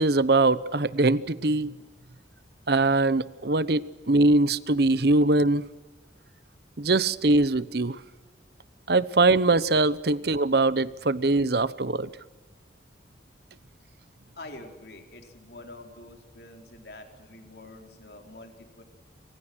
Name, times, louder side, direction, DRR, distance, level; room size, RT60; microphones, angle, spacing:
voice 1, 0.0-1.7 2.7-3.8 4.1-5.6 6.8-8.0 8.9-12.1, right 2 dB, 60° right, 17 dB, 0.9 m, -22 dB
voice 2, 14.3-18.8, left 2 dB, 60° left, 4 dB, 4.4 m, -46 dB
28.0 x 26.0 x 6.4 m, 1.2 s
head